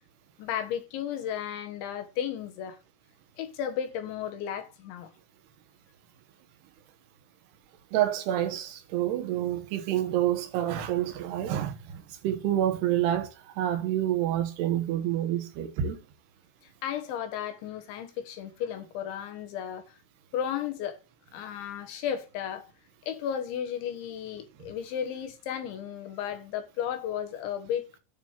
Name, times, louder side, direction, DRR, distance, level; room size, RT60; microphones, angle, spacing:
voice 1, 0.4-2.8 3.4-5.1 16.8-20.0 20.3-21.0 21.3-22.7 23.1-27.8, left 9 dB, 70° left, 3.7 m, -34 dB
voice 2, 7.9-16.0, right 12 dB, 70° right, 2.9 m, -28 dB
9.2 x 5.0 x 7.4 m
omnidirectional pair, 5.7 m